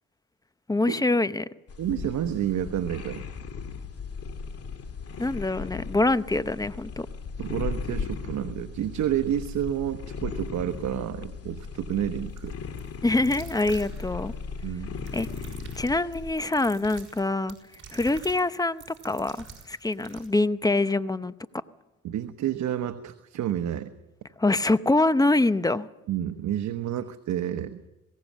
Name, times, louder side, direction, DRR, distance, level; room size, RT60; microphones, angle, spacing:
voice 1, 0.7-1.5 5.2-7.1 13.0-14.3 15.1-15.3 15.8-17.6 17.9-21.3 24.4-25.9, left 2 dB, 10° left, 14 dB, 0.8 m, -25 dB
sound 1, 1.7-16.3, left 5 dB, 50° left, 2.3 m, -37 dB
voice 2, 1.8-3.2 7.4-12.5 14.6-15.0 22.0-23.9 26.1-27.8, right 11 dB, 70° right, 8 dB, 1.1 m, -29 dB
sound 2, 12.4-12.5 12.8-12.9 13.2-14.3 15.0-20.3, right 5 dB, 40° right, 5.8 m, -47 dB
20.5 x 17.5 x 7.4 m, 0.99 s
cardioid pair, 90°, 30 cm